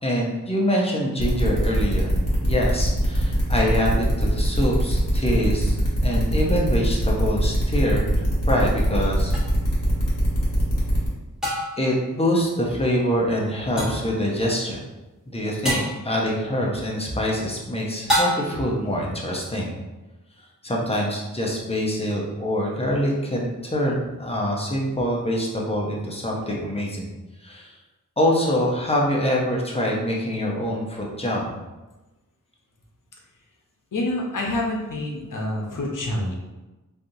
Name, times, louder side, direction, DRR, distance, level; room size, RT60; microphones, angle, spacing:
voice 1, 0.0-2.2 2.4-9.3 11.8-14.8 15.3-19.8 20.6-27.1 27.4-27.8 28.2-31.5, equal, 20° left, -2 dB, 0.7 m, -25 dB
sound 1, 1.2-11.1, equal, 50° left, 1.4 m, -23 dB
sound 2, 9.3-9.4 11.4-11.9 13.8-14.1 15.6-16.0 18.1-18.7, equal, ahead, 1.2 m, -25 dB
voice 2, 33.9-36.3, left 1 dB, 70° left, -2 dB, 0.7 m, -27 dB
3.3 x 2.5 x 2.7 m, 1.1 s
wide cardioid pair, 75°, 33 cm